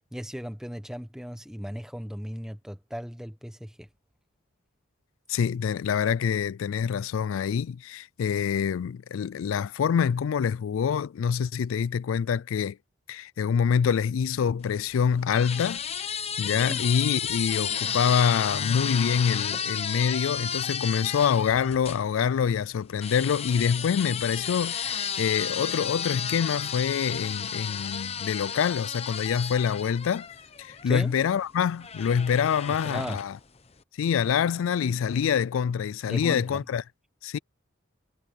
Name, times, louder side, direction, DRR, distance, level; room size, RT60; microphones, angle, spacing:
voice 1, 0.1-3.9 16.5-16.8 30.9-31.1 32.7-33.2 36.1-36.6, equal, 5° right, 1.1 m, -36 dB
voice 2, 5.3-12.8 13.1-15.8 16.4-30.3 30.6-33.3 34.0-36.8 37.2-37.4, left 7 dB, 80° left, 0.3 m, -26 dB
sound 1, 14.6-22.0 23.0-30.9 31.8-33.4, left 7 dB, 30° left, 0.9 m, -33 dB
head